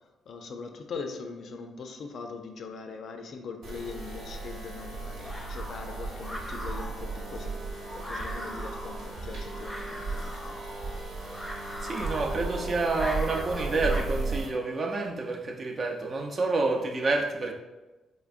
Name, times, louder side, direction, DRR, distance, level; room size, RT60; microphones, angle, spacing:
voice 1, 0.3-7.5 7.9-10.6 12.6-12.7, left 4 dB, 60° left, 5 dB, 0.4 m, -41 dB
sound 1, 3.6-14.5, right 3 dB, 80° right, 0.9 m, -35 dB
sound 2, 4.1-14.0, left 1 dB, 10° left, 0.7 m, -41 dB
voice 2, 11.8-17.5, right 3 dB, 40° right, 2 dB, 0.5 m, -29 dB
3.7 x 3.3 x 2.5 m, 1.1 s
cardioid pair, 90°, 0 cm